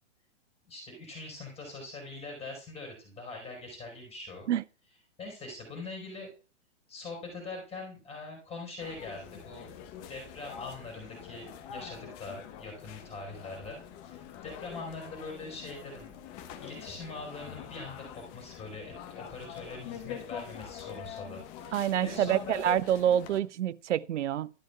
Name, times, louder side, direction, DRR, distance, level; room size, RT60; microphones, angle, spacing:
voice 1, 0.7-4.5 5.2-6.3 6.9-9.7 10.1-16.1 16.6-22.6, left 3 dB, 15° left, 4.7 m, -43 dB
sound 1, 8.8-23.4, left 9 dB, 35° left, 1.0 m, -45 dB
voice 2, 21.7-24.5, right 10 dB, 80° right, 0.5 m, -27 dB
12.5 x 10.5 x 2.4 m
hypercardioid pair, 125°, 36 cm